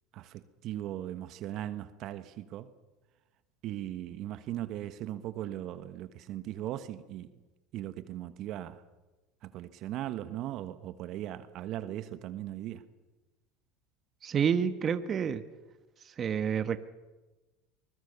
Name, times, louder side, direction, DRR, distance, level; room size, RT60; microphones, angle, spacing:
voice 1, 0.1-2.7 3.6-7.3 7.7-8.8 9.4-12.8, right 12 dB, 55° right, 1.3 m, -38 dB
voice 2, 14.2-15.4 16.2-16.8, right 7 dB, 35° right, 1.2 m, -28 dB
24.0 x 20.5 x 6.9 m
supercardioid pair, 105°, 0 cm